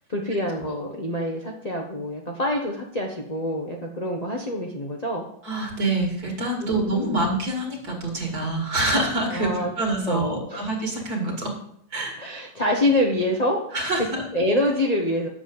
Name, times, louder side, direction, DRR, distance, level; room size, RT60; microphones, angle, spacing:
voice 1, 0.1-5.3 6.6-7.3 9.3-9.7 10.1-10.7 12.2-13.8 14.3-15.3, left 1 dB, 30° left, -1 dB, 0.8 m, -26 dB
voice 2, 5.4-11.5 11.9-12.2 13.7-14.2, right 2 dB, 50° right, 0 dB, 2.7 m, -26 dB
8.3 x 7.2 x 5.4 m, 0.69 s
omnidirectional pair, 2.1 m